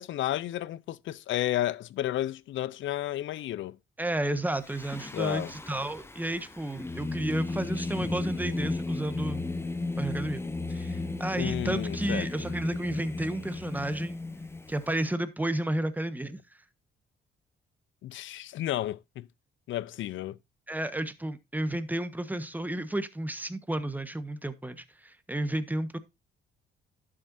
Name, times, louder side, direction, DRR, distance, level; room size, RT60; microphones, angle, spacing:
voice 1, 0.0-3.8 5.1-5.5 11.4-12.3 18.0-19.3 19.7-20.4, left 13 dB, 75° left, 0.6 m, -32 dB
voice 2, 4.0-9.4 10.0-10.4 10.7-14.2 14.7-16.4 20.7-26.0, right 1 dB, 10° right, 1.3 m, -32 dB
Singing, 4.6-15.0, left 2 dB, 10° left, 1.0 m, -35 dB
11.5 x 7.7 x 2.7 m
cardioid pair, 90°, 20 cm